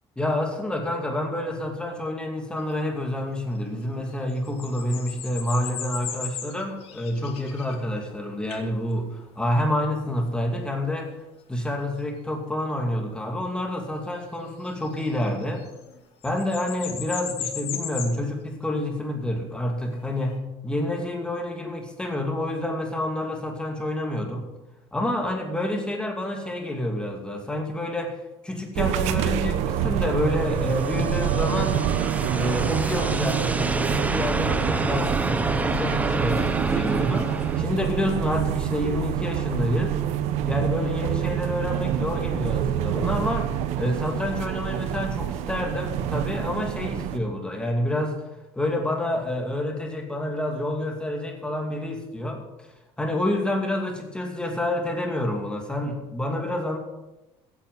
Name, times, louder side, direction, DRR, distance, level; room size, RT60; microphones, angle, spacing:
voice 1, 0.2-11.1 11.5-15.6 16.2-20.4 20.6-24.4 24.9-31.8 32.3-40.0 40.4-48.2 48.5-52.7 53.0-56.8, left 1 dB, 10° left, 2 dB, 2.5 m, -28 dB
sound 1, 2.6-2.7 4.1-8.1 8.5-8.7 10.1-10.2 14.6-16.0 16.2-18.2 19.9-20.3, left 8 dB, 60° left, 2.4 m, -36 dB
sound 2, 28.8-47.2, right 10 dB, 80° right, 0.9 m, -27 dB
sound 3, 29.8-37.6, right 3 dB, 15° right, 0.7 m, -28 dB
15.5 x 8.8 x 5.6 m, 0.98 s
cardioid pair, 135°, 11 cm